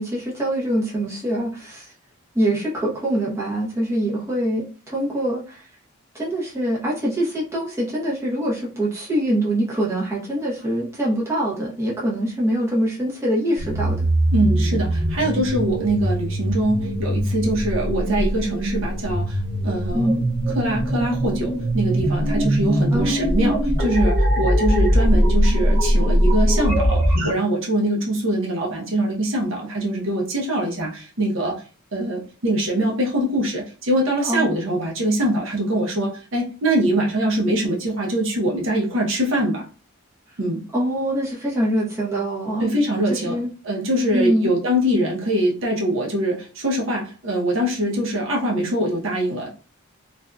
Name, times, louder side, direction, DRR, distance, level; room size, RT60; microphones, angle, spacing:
voice 1, 0.0-1.9 2.3-5.7 6.1-14.1 19.9-20.3 22.9-23.1 34.2-34.5 40.7-42.7 43.1-43.5 44.1-44.5, right 1 dB, 15° right, -5 dB, 0.8 m, -24 dB
sound 1, 13.6-27.3, equal, 45° right, 1.1 m, -21 dB
voice 2, 14.3-20.1 20.5-31.6 31.9-39.7 40.4-40.6 42.6-43.4 43.6-49.5, right 1 dB, 60° right, -2 dB, 0.7 m, -23 dB
2.6 x 2.4 x 2.2 m, 0.36 s
head